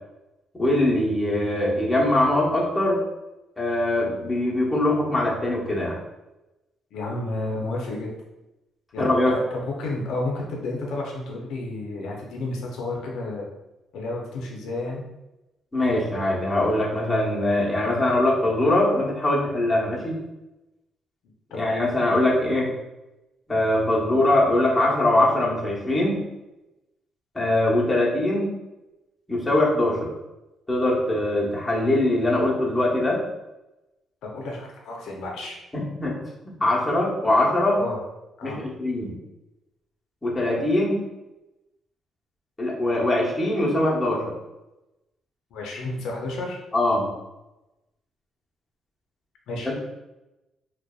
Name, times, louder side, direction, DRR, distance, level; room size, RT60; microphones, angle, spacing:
voice 1, 0.6-3.0 3.6-6.0 9.0-9.4 15.7-20.2 21.5-22.7 23.5-26.2 27.3-28.5 29.3-30.1 30.7-33.2 35.7-36.2 36.6-37.8 38.4-39.2 40.2-41.0 42.6-44.3 46.7-47.1 49.6-49.7, left 1 dB, 15° left, -5 dB, 0.8 m, -22 dB
voice 2, 6.9-8.1 8.9-13.5 13.9-15.0 21.5-21.7 34.2-35.6 37.8-38.0 38.4-38.6 45.5-46.6 49.5-49.7, left 2 dB, 80° left, -1 dB, 0.4 m, -31 dB
2.6 x 2.1 x 2.3 m, 0.99 s
cardioid pair, 90°, 0 cm